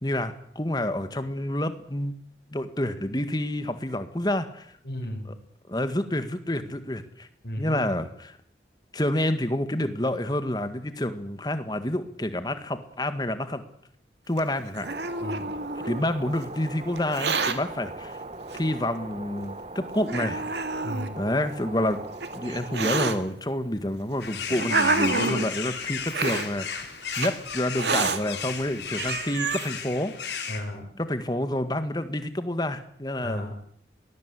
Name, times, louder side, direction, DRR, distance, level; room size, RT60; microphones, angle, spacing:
voice 1, 0.0-2.1 2.5-4.7 5.2-5.3 5.7-7.3 7.6-8.4 8.9-13.6 14.3-14.9 15.8-18.2 18.5-20.4 21.2-22.0 22.3-26.9 27.2-30.1 31.0-33.5, left 1 dB, 25° left, 9 dB, 1.8 m, -28 dB
voice 2, 4.9-5.3 7.4-7.8 15.2-15.5 20.8-21.1 30.5-30.8 33.2-33.5, equal, 65° left, 0 dB, 5.8 m, -34 dB
Hiss, 14.4-16.0 17.0-17.6 18.5-18.6 19.4-19.5 20.1-21.1 21.9-23.2 24.0-25.5 26.1-26.5 27.1-27.3 27.8-28.2 28.7-28.8 29.0-29.7, right 4 dB, 85° right, 2.2 m, -28 dB
sound 1, 14.8-23.2, right 2 dB, 35° right, 1.3 m, -40 dB
sound 2, 24.2-30.6, left 6 dB, 85° left, 3.9 m, -34 dB
24.0 x 19.5 x 8.4 m, 0.65 s
head